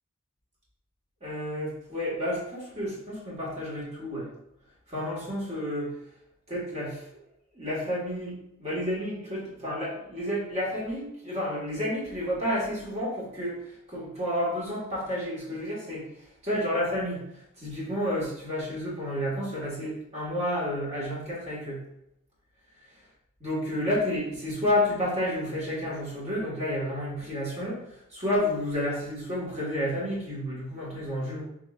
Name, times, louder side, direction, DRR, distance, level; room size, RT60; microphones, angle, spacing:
voice 1, 1.2-4.3 4.9-6.0 6.5-7.1 7.5-21.8 23.4-31.4, left 1 dB, 30° right, -5 dB, 1.5 m, -31 dB
5.5 x 3.2 x 2.4 m, 0.80 s
head